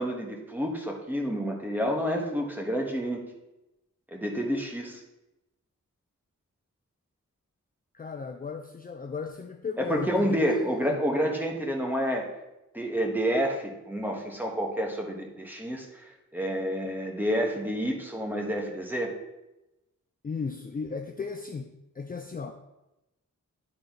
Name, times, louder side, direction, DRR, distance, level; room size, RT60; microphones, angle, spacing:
voice 1, 0.0-3.2 4.1-5.0 9.8-12.2 12.7-19.1, equal, 5° right, 1 dB, 1.2 m, -29 dB
voice 2, 7.9-11.0 20.2-22.5, left 5 dB, 30° left, 4 dB, 0.4 m, -35 dB
10.0 x 3.8 x 4.0 m, 0.95 s
wide cardioid pair, 120°, 31 cm